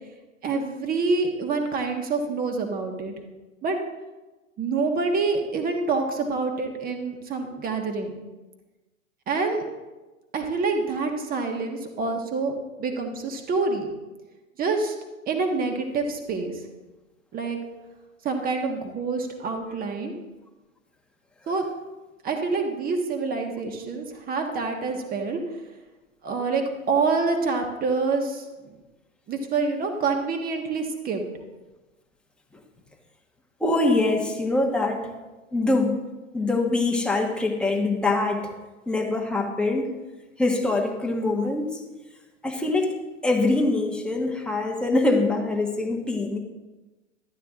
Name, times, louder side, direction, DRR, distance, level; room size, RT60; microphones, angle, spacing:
voice 1, 0.4-3.1 3.6-3.8 4.6-8.1 9.3-9.6 10.3-12.5 12.8-13.8 14.6-14.9 15.3-16.5 17.3-17.6 18.2-20.1 21.5-21.6 22.2-25.4 26.2-28.5 29.3-31.2, right 4 dB, 20° right, 4 dB, 1.4 m, -26 dB
voice 2, 33.6-35.1 35.5-36.0 36.3-38.5 38.9-39.9 40.4-41.8 42.4-42.9 43.2-46.4, left 2 dB, ahead, 0 dB, 1.2 m, -24 dB
12.5 x 9.1 x 3.7 m, 1.2 s
hypercardioid pair, 120°, 40 cm